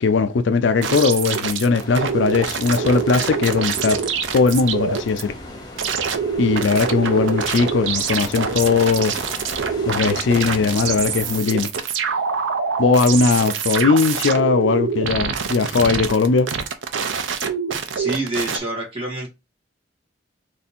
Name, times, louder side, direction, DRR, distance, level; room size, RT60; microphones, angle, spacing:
voice 1, 0.0-4.0 4.3-5.3 6.4-9.1 9.9-11.7 12.8-16.5, left 4 dB, 80° left, 0.4 m, -19 dB
sound 1, 0.8-5.2 5.8-18.6, right 6 dB, 90° right, 0.6 m, -25 dB
sound 2, 1.8-11.4, left 1 dB, 20° left, 0.9 m, -37 dB
voice 2, 17.9-19.3, right 2 dB, 30° right, 1.6 m, -27 dB
3.4 x 2.7 x 4.2 m
head